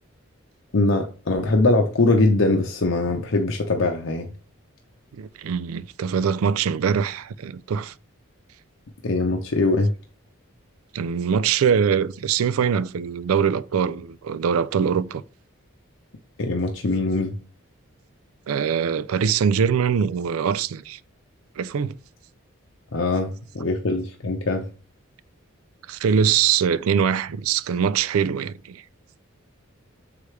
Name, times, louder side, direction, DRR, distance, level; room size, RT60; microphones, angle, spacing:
voice 1, 0.7-4.3 9.0-9.9 16.4-17.3 22.9-24.6, left 2 dB, 65° left, 0.7 m, -22 dB
voice 2, 5.1-7.9 10.9-15.2 18.5-21.0 21.6-21.9 25.9-28.8, right 7 dB, 90° right, 0.4 m, -23 dB
6.8 x 4.9 x 3.2 m
head